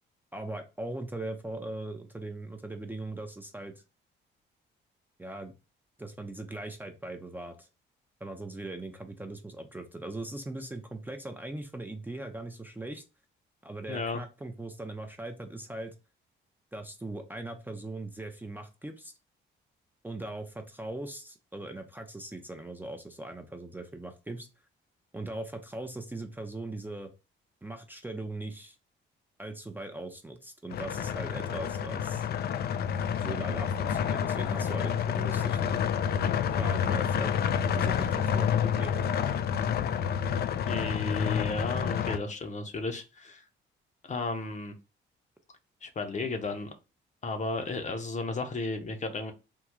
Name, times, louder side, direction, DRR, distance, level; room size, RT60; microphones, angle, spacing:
voice 1, 0.3-3.7 5.2-5.5 6.0-7.7 8.2-13.0 13.6-15.9 16.7-19.1 20.0-24.5 25.1-27.1 27.6-28.8 29.4-32.3 33.2-35.8 36.6-37.3 37.7-39.1, right 2 dB, 10° right, 5 dB, 0.5 m, -40 dB
voice 2, 13.9-14.2 40.7-43.4 44.1-44.7 45.8-46.7 47.2-49.3, left 3 dB, 35° left, 6 dB, 0.7 m, -33 dB
sound 1, 30.7-42.2, left 8 dB, 55° left, 0.4 m, -29 dB
3.6 x 2.3 x 2.9 m, 0.30 s
cardioid pair, 90°, 20 cm